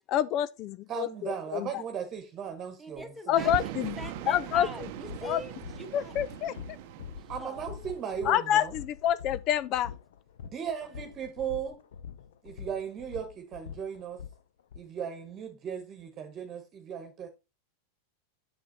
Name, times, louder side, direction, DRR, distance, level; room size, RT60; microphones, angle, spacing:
voice 1, 0.1-1.7 3.3-4.0 4.3-4.7 5.2-5.4 5.9-6.5 8.3-9.9, left 11 dB, 45° left, 0.4 m, -27 dB
voice 2, 0.9-3.4 7.3-8.7 10.5-11.8 12.4-14.2 14.7-17.3, right 8 dB, 35° right, 1.3 m, -37 dB
voice 3, 2.8-6.1 7.2-7.7, right 1 dB, ahead, 1.5 m, -43 dB
sound 1, 2.9-3.0 3.4-14.8, left 8 dB, 80° left, 0.7 m, -45 dB
sound 2, 3.4-8.1, right 15 dB, 60° right, 0.7 m, -40 dB
7.7 x 6.2 x 4.1 m
hypercardioid pair, 120°, 0 cm